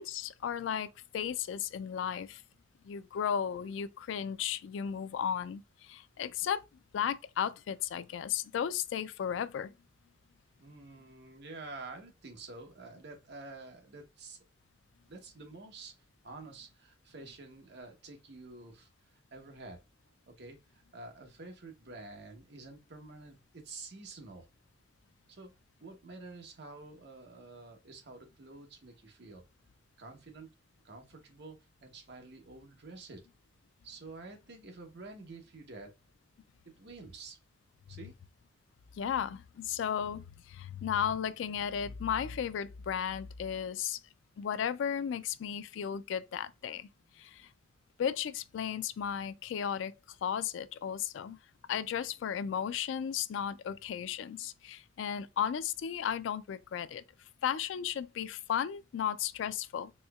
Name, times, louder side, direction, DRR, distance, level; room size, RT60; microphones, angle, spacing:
voice 1, 0.0-2.4 2.8-6.6 6.9-9.7 38.9-44.0 44.4-46.9 47.2-47.5 48.0-49.9 50.2-51.4 51.7-57.0 57.4-59.9, left 8 dB, 75° left, 0.3 m, -34 dB
voice 2, 10.6-14.4 15.1-16.0 16.2-19.8 20.3-24.5 25.3-25.5 25.8-29.4 30.0-30.5 30.8-33.2 33.8-35.9 36.8-37.4 37.9-38.1, right 3 dB, 60° right, 0.9 m, -49 dB
4.2 x 2.7 x 2.3 m
head